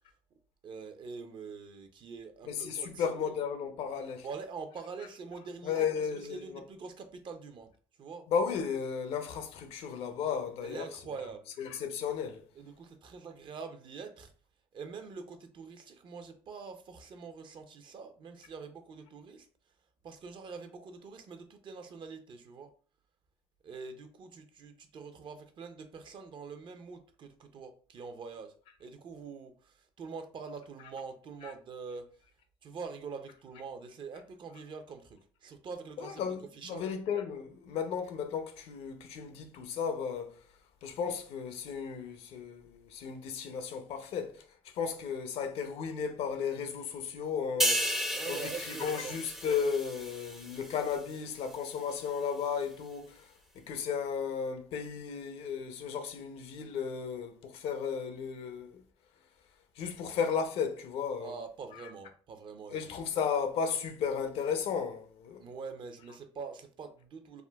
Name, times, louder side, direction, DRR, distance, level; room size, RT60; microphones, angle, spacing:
voice 1, 0.6-3.4 4.2-5.9 6.1-7.7 8.0-8.3 10.6-11.5 12.5-14.3 14.7-19.5 20.0-22.7 23.6-28.5 28.8-32.1 32.6-36.2 36.5-36.8 48.1-49.2 61.2-62.9 65.4-67.4, right 5 dB, 50° right, 0.5 m, -44 dB
voice 2, 2.4-4.3 5.6-6.7 8.3-11.1 11.6-12.4 30.8-30.9 31.4-31.5 36.0-40.4 40.8-44.4 44.7-53.3 53.5-58.8 59.8-61.5 61.7-61.9 62.7-65.4, left 6 dB, 70° left, 0.5 m, -34 dB
sound 1, 47.6-51.1 51.5-51.7, equal, 5° right, 0.4 m, -33 dB
3.6 x 2.2 x 2.2 m
supercardioid pair, 75°, 11 cm